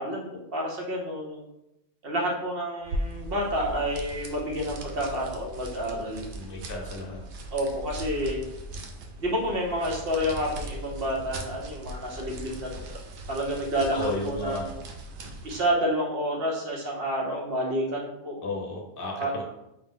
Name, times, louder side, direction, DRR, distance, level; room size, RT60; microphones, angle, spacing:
voice 1, 0.0-1.4 2.0-6.2 7.5-8.4 9.2-12.8 13.3-14.8 15.4-18.4 19.2-19.3, equal, 60° right, -2 dB, 1.0 m, -29 dB
sound 1, 2.8-15.7, right 1 dB, 90° right, 0.9 m, -39 dB
voice 2, 6.3-7.2 13.9-14.7 18.4-19.4, left 2 dB, 60° left, -1 dB, 0.9 m, -33 dB
4.7 x 2.0 x 3.7 m, 0.87 s
omnidirectional pair, 1.1 m